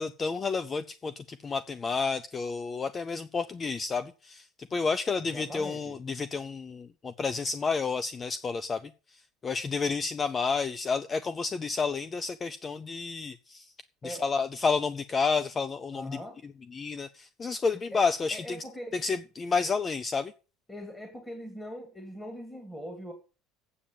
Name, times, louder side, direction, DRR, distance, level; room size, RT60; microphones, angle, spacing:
voice 1, 0.0-13.7 14.0-16.2 16.7-18.6 18.9-20.3, left 4 dB, 30° left, 0.6 m, -30 dB
voice 2, 5.3-6.0 14.0-14.3 15.9-16.4 17.9-18.0 18.3-19.0 20.7-23.1, equal, 10° left, 2.4 m, -41 dB
8.3 x 7.4 x 7.2 m
hypercardioid pair, 85°, 0 cm